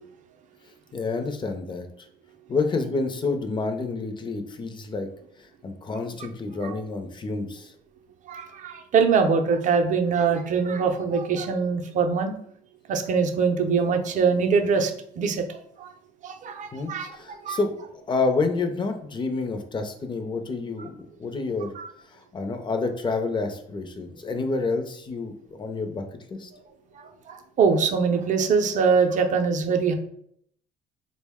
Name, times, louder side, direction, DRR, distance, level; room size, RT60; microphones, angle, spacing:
voice 1, 0.9-2.1 2.5-5.1 5.4-7.7 16.7-21.7 22.0-26.0 26.3-26.5, left 3 dB, 30° left, 6 dB, 0.5 m, -29 dB
voice 2, 8.3-12.3 12.9-15.9 16.2-17.1 17.4-17.6 21.8-21.9 27.0-29.9, right 5 dB, 50° right, 5 dB, 0.5 m, -23 dB
3.8 x 2.1 x 3.5 m, 0.68 s
cardioid pair, 110°, 17 cm